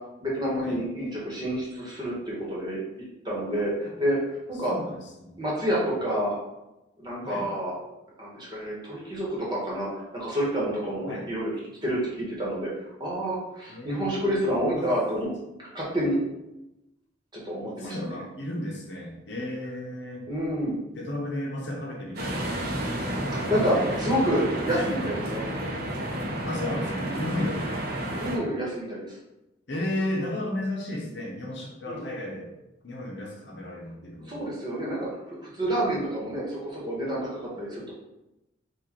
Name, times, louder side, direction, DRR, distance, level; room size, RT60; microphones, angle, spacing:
voice 1, 0.2-4.2 4.5-4.7 5.4-6.3 7.0-7.8 8.2-11.5 11.8-12.7 13.0-15.3 15.7-16.2 17.3-18.2 20.3-20.8 23.3-25.4 28.2-29.2 31.9-32.0 34.3-37.9, equal, 20° right, -5 dB, 1.3 m, -28 dB
voice 2, 4.7-5.4 7.2-7.5 11.1-11.3 13.7-14.4 14.7-14.9 17.6-20.2 21.0-23.4 24.7-24.9 26.4-27.7 29.7-32.5 32.8-34.4 35.8-35.9, left 1 dB, 60° left, -2 dB, 1.0 m, -34 dB
sound 1, 22.2-28.4, right 1 dB, 50° right, 0.8 m, -31 dB
4.7 x 2.5 x 4.4 m, 0.96 s
head